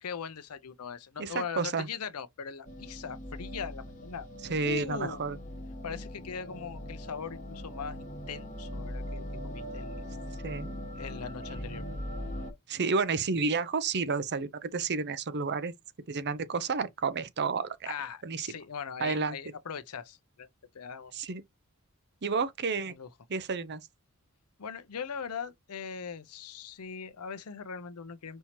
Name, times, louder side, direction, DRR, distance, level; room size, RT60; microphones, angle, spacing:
voice 1, 0.0-4.3 4.6-5.2 5.8-10.0 10.9-11.9 17.9-20.5 20.7-21.1 22.9-23.1 24.6-28.4, left 6 dB, 90° left, 0.6 m, -40 dB
voice 2, 1.2-1.9 4.5-5.4 10.4-10.7 12.7-15.7 16.1-17.9 18.2-18.5 19.0-19.4 21.1-21.4 22.2-22.9 23.3-23.8, right 4 dB, 50° right, 0.6 m, -31 dB
sound 1, 2.7-12.5, equal, 35° left, 1.3 m, -40 dB
5.4 x 2.9 x 3.0 m
head